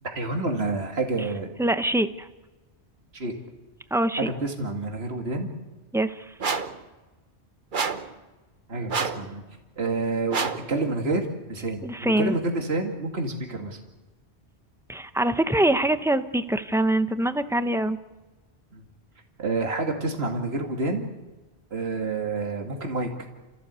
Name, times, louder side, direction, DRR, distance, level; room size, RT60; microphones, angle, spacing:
voice 1, 0.0-1.5 3.1-3.3 4.4-5.5 8.7-9.4 9.8-13.8 18.7-18.8 19.4-21.1 21.7-23.1, right 2 dB, 65° right, 2 dB, 2.5 m, -28 dB
voice 2, 1.6-2.3 3.9-4.3 5.9-6.2 11.8-12.3 14.9-18.0, right 1 dB, 5° right, 10 dB, 0.7 m, -24 dB
sound 1, 6.4-6.8 7.7-8.1 8.9-9.3 10.3-10.7, right 5 dB, 50° right, 1.2 m, -28 dB
29.5 x 15.0 x 8.2 m, 1.2 s
omnidirectional pair, 1.1 m